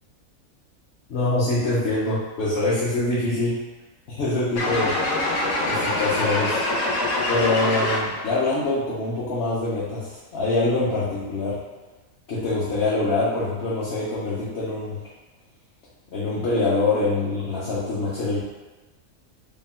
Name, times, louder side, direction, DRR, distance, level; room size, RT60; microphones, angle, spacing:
voice 1, 1.1-3.6 4.1-5.0 5.6-6.6 7.3-11.6 12.3-15.0 16.1-18.4, left 2 dB, 55° left, -9 dB, 0.9 m, -24 dB
sound 1, 4.6-8.3, left 2 dB, 80° left, 1.2 m, -24 dB
3.7 x 2.1 x 4.1 m, 1.2 s
omnidirectional pair, 1.5 m